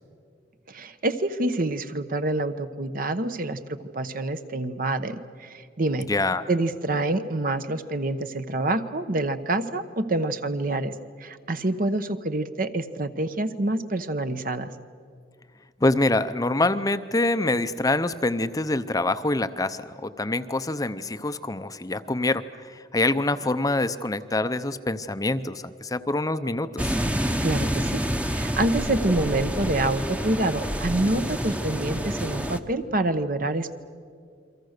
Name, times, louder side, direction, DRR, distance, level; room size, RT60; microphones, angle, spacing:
voice 1, 0.7-3.6 3.9-6.1 6.5-14.7 27.2-28.0 28.3-33.7, right 2 dB, 55° right, 10 dB, 1.1 m, -27 dB
voice 2, 6.1-6.4 15.8-27.0, left 2 dB, 20° left, 11 dB, 0.6 m, -25 dB
sound 1, 26.8-32.6, equal, 10° right, 0.9 m, -28 dB
29.0 x 23.5 x 6.6 m, 2.2 s
head